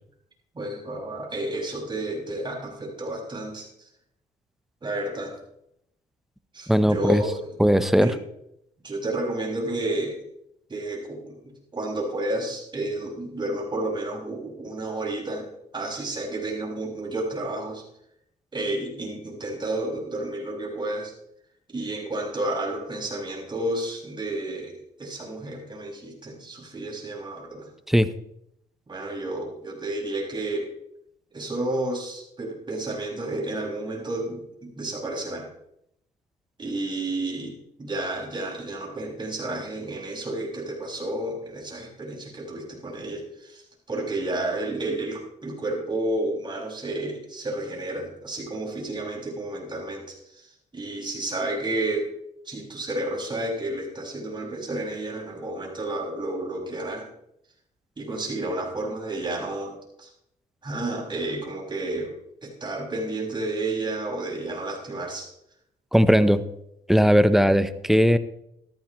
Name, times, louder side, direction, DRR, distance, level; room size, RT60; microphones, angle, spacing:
voice 1, 0.5-3.9 4.8-5.3 6.5-7.4 8.0-8.2 8.8-10.2 10.7-15.5 15.7-17.8 18.5-21.1 21.7-24.7 25.0-27.7 28.9-30.7 31.3-35.5 36.6-52.1 52.4-57.1 58.0-60.1 60.6-62.1 62.4-65.3, right 2 dB, 30° right, -2 dB, 6.2 m, -31 dB
voice 2, 6.7-7.2 7.6-8.1 27.9-28.1 65.9-66.4 66.9-68.2, equal, ahead, 12 dB, 0.9 m, -18 dB
15.0 x 13.5 x 3.2 m, 0.77 s
cardioid pair, 75°, 15 cm